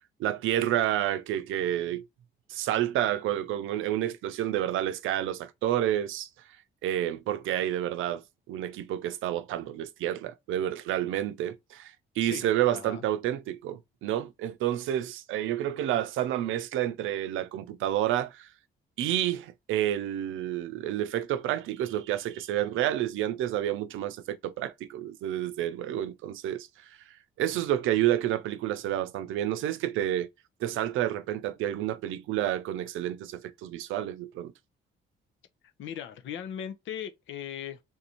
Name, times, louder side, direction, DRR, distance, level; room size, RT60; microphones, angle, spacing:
voice 1, 0.2-2.0 2.5-6.3 6.8-18.5 19.0-27.0 27.4-30.3 30.6-34.5, right 12 dB, 85° right, 0.5 m, -29 dB
voice 2, 12.2-13.0 35.8-37.8, left 9 dB, 75° left, 0.8 m, -38 dB
3.9 x 2.6 x 2.8 m
cardioid pair, 90°, 20 cm